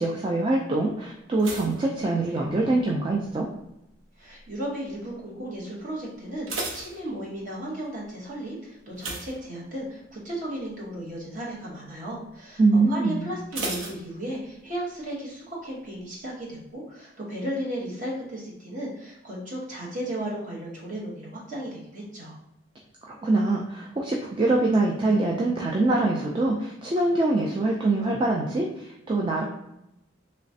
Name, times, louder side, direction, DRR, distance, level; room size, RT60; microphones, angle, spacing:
voice 1, 0.0-3.5 12.6-13.2 23.0-29.4, right 2 dB, 25° right, -1 dB, 0.3 m, -24 dB
sound 1, 1.4-2.9 3.1-3.6 4.2-4.6 4.9-5.0 5.4-5.5 6.1-7.7 8.9-10.1 10.4-10.7 11.1-11.2 13.5-14.7 15.0-15.1, right 3 dB, 80° right, 0.7 m, -36 dB
voice 2, 4.2-12.6 12.9-22.4, right 1 dB, 40° right, -4 dB, 1.0 m, -35 dB
3.2 x 3.0 x 2.7 m, 0.86 s
head